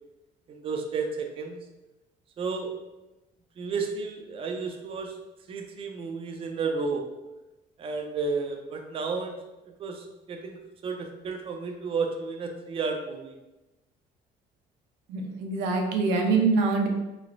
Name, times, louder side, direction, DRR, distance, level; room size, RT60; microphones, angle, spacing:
voice 1, 0.5-1.6 2.4-2.7 3.6-5.1 5.5-7.0 7.8-9.4 9.8-10.6 10.8-13.3, right 4 dB, 35° right, 3 dB, 0.4 m, -32 dB
voice 2, 15.1-16.9, right 4 dB, 90° right, 2 dB, 0.5 m, -24 dB
3.0 x 3.0 x 2.5 m, 1.0 s
cardioid pair, 110°, 17 cm